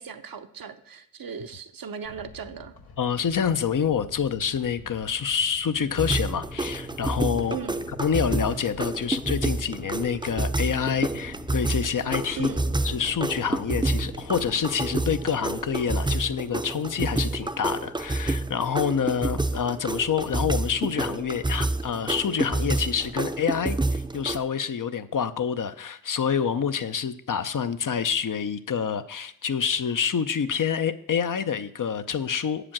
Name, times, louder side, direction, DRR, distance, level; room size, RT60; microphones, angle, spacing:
voice 1, 0.0-2.8 7.5-7.8 12.4-12.8, right 7 dB, 70° right, 8 dB, 0.8 m, -37 dB
sound 1, 2.0-14.6, left 3 dB, 85° left, 1.0 m, -46 dB
voice 2, 3.0-7.6 8.0-12.5 12.8-32.7, left 7 dB, 60° left, 11 dB, 0.7 m, -27 dB
sound 2, 6.0-24.4, right 2 dB, 15° right, 0.6 m, -29 dB
7.5 x 5.0 x 7.3 m, 0.70 s
cardioid pair, 45°, 36 cm